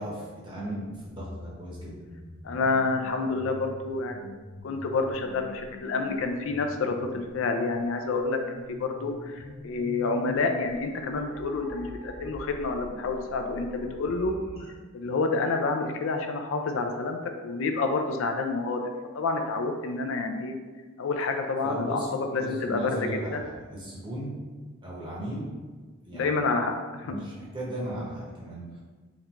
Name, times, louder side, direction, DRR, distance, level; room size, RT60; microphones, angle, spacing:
voice 1, 0.0-2.0 21.6-22.1 22.4-24.4 24.8-25.5 26.0-26.4 27.0-28.8, right 1 dB, 25° right, -5 dB, 0.9 m, -36 dB
sound 1, 1.0-14.7, left 1 dB, 30° left, 0.9 m, -44 dB
voice 2, 2.4-4.2 4.6-14.4 14.9-18.8 19.1-20.6 21.0-23.4 26.1-27.2, left 3 dB, 75° left, 4 dB, 0.4 m, -28 dB
3.7 x 3.3 x 2.9 m, 1.4 s
head